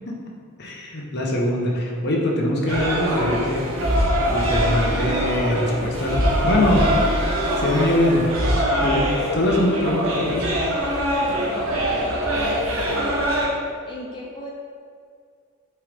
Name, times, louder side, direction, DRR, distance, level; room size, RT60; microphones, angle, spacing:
voice 1, 0.6-3.6 4.3-6.2 6.4-6.9 7.6-8.3 8.8-10.5, left 1 dB, 55° left, -1 dB, 1.1 m, -22 dB
sound 1, 2.7-13.5, equal, 75° right, 1.3 m, -23 dB
sound 2, 3.5-9.8, right 1 dB, 30° right, 0.7 m, -36 dB
voice 2, 11.3-13.3 13.9-14.5, left 2 dB, 20° left, -4 dB, 0.8 m, -36 dB
8.5 x 4.5 x 3.6 m, 2.2 s
head